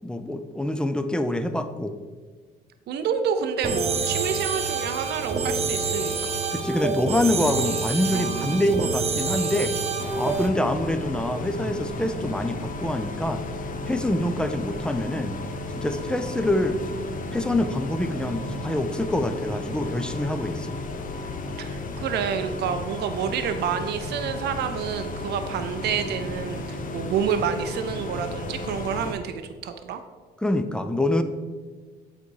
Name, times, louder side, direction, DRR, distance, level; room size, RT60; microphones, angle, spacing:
voice 1, 0.0-1.9 6.5-9.8 10.2-13.4 13.9-15.4 15.7-16.8 17.3-20.8 30.4-31.2, left 1 dB, 5° left, 9 dB, 0.6 m, -25 dB
voice 2, 2.9-6.3 21.6-30.0, right 7 dB, 70° right, 8 dB, 0.6 m, -28 dB
sound 1, 3.6-10.5, right 4 dB, 35° right, 0.9 m, -27 dB
Acoustic guitar, 8.1-16.1, right 6 dB, 85° right, 1.1 m, -42 dB
sound 2, 10.0-29.1, left 2 dB, 50° left, 0.8 m, -33 dB
8.1 x 4.2 x 4.7 m, 1.4 s
cardioid pair, 85°, 18 cm